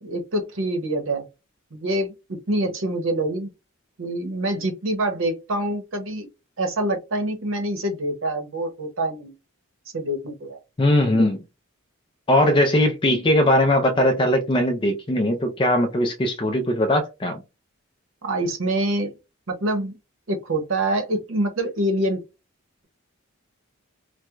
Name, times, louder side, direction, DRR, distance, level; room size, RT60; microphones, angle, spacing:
voice 1, 0.0-1.3 1.7-3.5 4.0-6.3 6.6-9.3 9.9-10.6 18.2-19.1 19.5-20.0 20.3-22.2, right 1 dB, 65° right, 0.9 m, -25 dB
voice 2, 10.8-11.4 12.3-17.4, left 1 dB, 25° left, 0.4 m, -20 dB
4.5 x 2.1 x 2.4 m
head